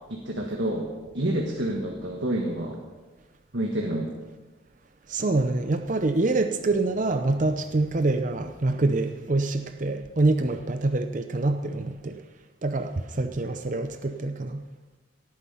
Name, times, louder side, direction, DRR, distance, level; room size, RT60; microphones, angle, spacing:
voice 1, 0.1-0.9 1.1-2.8 3.5-4.1, right 1 dB, 70° right, 0 dB, 1.6 m, -28 dB
voice 2, 5.1-12.2 12.6-14.6, right 2 dB, 40° right, 8 dB, 0.6 m, -25 dB
17.5 x 9.6 x 5.6 m, 1.3 s
head